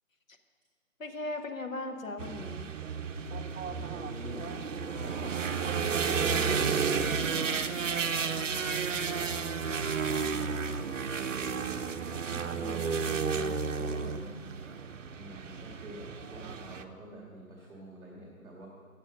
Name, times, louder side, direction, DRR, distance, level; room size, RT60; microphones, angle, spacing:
voice 1, 1.0-2.7 13.8-14.5, left 2 dB, 65° left, 5 dB, 1.0 m, -39 dB
sound 1, 2.2-16.8, right 5 dB, 60° right, 0.6 m, -32 dB
voice 2, 3.6-5.4 6.2-8.6 9.7-10.7 12.3-14.1 15.1-18.7, right 2 dB, ahead, -19 dB, 0.8 m, -46 dB
9.1 x 7.2 x 5.3 m, 2.1 s
figure-of-eight pair, 150°, 42 cm